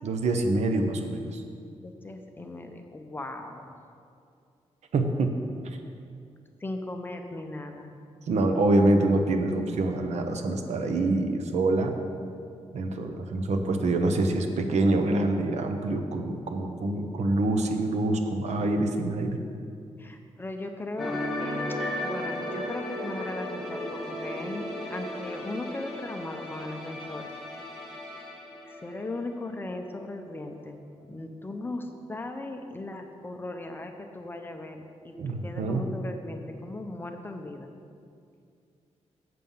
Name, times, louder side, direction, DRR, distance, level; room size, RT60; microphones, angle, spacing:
voice 1, 0.0-1.4 4.9-5.4 5.6-5.8 8.3-12.0 12.7-19.4 35.2-35.9, right 2 dB, 70° right, 5 dB, 0.8 m, -26 dB
voice 2, 1.8-3.8 6.6-8.0 20.0-21.2 22.0-27.3 28.6-37.7, left 2 dB, 20° left, 5 dB, 0.5 m, -38 dB
sound 1, 21.0-29.7 29.9-30.2, left 1 dB, ahead, 1.5 m, -35 dB
7.6 x 5.5 x 7.1 m, 2.4 s
wide cardioid pair, 160°, 12 cm